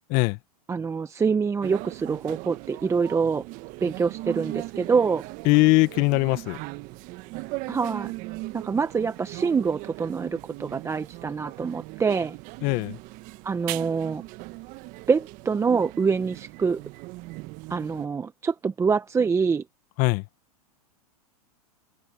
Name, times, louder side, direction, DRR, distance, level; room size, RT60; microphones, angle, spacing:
voice 1, 0.7-3.4 3.8-5.2 7.7-8.1 8.5-12.3 13.4-14.2 15.1-16.8 17.7-19.6, right 5 dB, 15° right, 1.1 m, -25 dB
sound 1, 1.6-18.1, right 22 dB, 45° right, 1.3 m, -39 dB
voice 2, 5.4-6.6 12.6-13.0 20.0-20.2, left 24 dB, 45° left, 1.7 m, -21 dB
hypercardioid pair, 120°, 20 cm